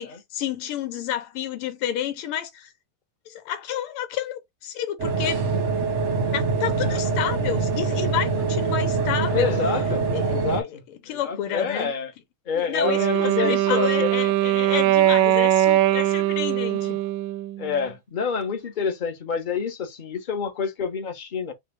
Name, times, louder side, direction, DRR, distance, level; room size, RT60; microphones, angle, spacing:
voice 1, 0.0-2.7 3.3-5.5 6.3-9.5 10.1-10.2 11.1-11.9 12.6-17.0, left 10 dB, 90° left, 1.8 m, -30 dB
sound 1, 5.0-10.6, right 4 dB, 50° right, 0.9 m, -24 dB
voice 2, 9.3-12.1 12.5-14.1 14.7-14.8 17.6-21.5, left 5 dB, 40° left, 0.7 m, -28 dB
Wind instrument woodwind instrument, 12.8-17.9, right 13 dB, 75° right, 1.2 m, -21 dB
6.1 x 2.4 x 3.3 m
omnidirectional pair, 2.4 m